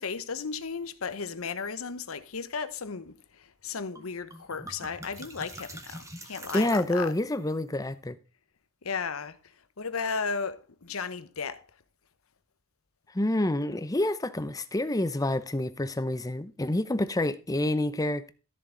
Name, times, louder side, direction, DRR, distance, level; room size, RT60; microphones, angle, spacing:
voice 1, 0.0-3.1 3.6-7.1 8.8-9.4 9.8-11.6, left 5 dB, 80° left, 0.9 m, -34 dB
sound 1, 3.9-4.1 4.3-7.3, right 1 dB, 15° right, 1.5 m, -44 dB
voice 2, 6.5-8.2 13.1-18.3, left 1 dB, 15° left, 0.7 m, -28 dB
13.5 x 7.0 x 3.8 m
head